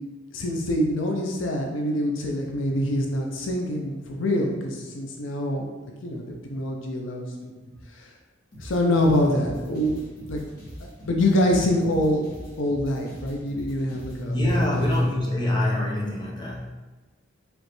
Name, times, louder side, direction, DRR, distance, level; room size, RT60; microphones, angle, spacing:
voice 1, 0.3-5.7 6.0-7.3 7.9-8.1 8.6-10.0 10.3-10.5 11.0-12.2 12.6-14.4 14.7-14.8, left 1 dB, 70° left, 1 dB, 0.6 m, -25 dB
sound 1, 8.5-15.0, equal, 45° left, 1.4 m, -41 dB
voice 2, 14.3-16.8, left 1 dB, 20° left, -4 dB, 0.8 m, -24 dB
4.9 x 3.1 x 3.1 m, 1.2 s
head